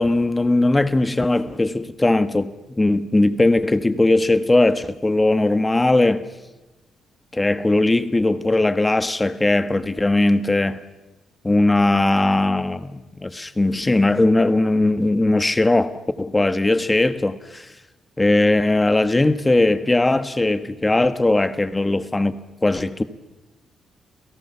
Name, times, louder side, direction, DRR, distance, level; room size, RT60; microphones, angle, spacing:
voice 1, 0.0-6.3 7.3-10.8 11.4-15.9 16.2-17.7 18.2-23.0, left 2 dB, 20° left, 1.3 m, -19 dB
28.5 x 17.0 x 7.0 m
cardioid pair, 80°, 0 cm